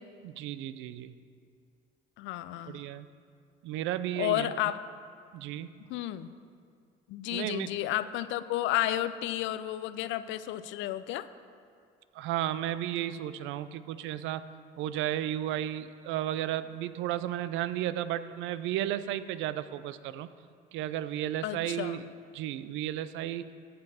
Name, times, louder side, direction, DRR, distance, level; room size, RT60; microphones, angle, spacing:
voice 1, 0.2-1.1 2.7-3.1 3.6-4.5 5.3-5.7 7.3-7.7 12.1-14.4 14.8-20.3 20.7-22.1 22.3-23.5, right 12 dB, 70° right, 14 dB, 0.4 m, -33 dB
voice 2, 2.2-2.8 4.2-4.8 5.9-6.3 7.1-11.3 21.4-22.0, left 13 dB, 70° left, 14 dB, 0.4 m, -32 dB
13.0 x 6.6 x 4.2 m, 2.2 s
supercardioid pair, 70°, 20 cm